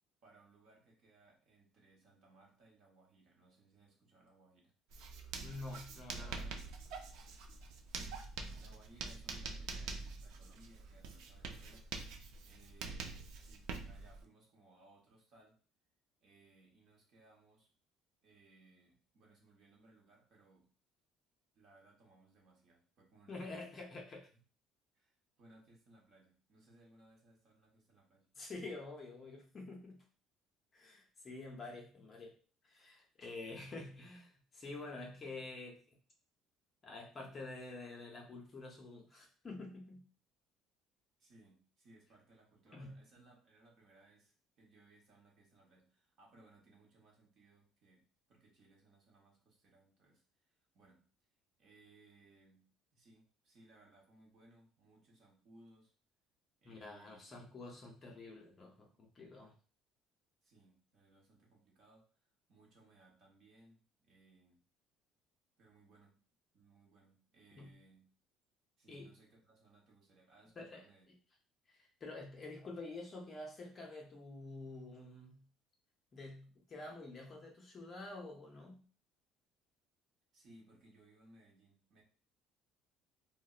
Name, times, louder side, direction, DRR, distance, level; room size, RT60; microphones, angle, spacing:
voice 1, 0.2-4.7 8.0-11.9 12.4-13.1 13.4-15.6 16.2-17.7 18.2-20.7 21.5-23.6 24.3-24.4 24.9-28.3 41.2-48.0 48.3-50.2 50.7-51.1 51.6-55.9 56.6-57.3 60.4-62.1 62.5-64.6 65.6-66.2 66.5-68.1 68.8-71.0 80.3-82.0, right 2 dB, 40° right, -1 dB, 0.9 m, -65 dB
Writing, 4.9-14.2, right 4 dB, 70° right, 0.4 m, -46 dB
voice 2, 5.4-6.6 23.3-24.3 28.4-30.0 30.7-32.3 32.6-35.8 36.8-40.0 42.7-43.0 56.6-59.5 67.6-67.8 68.9-69.1 70.6-70.8 71.7-75.5 76.1-78.8, left 2 dB, 25° left, 0 dB, 0.6 m, -48 dB
3.9 x 2.1 x 2.3 m, 0.39 s
cardioid pair, 170°, 0 cm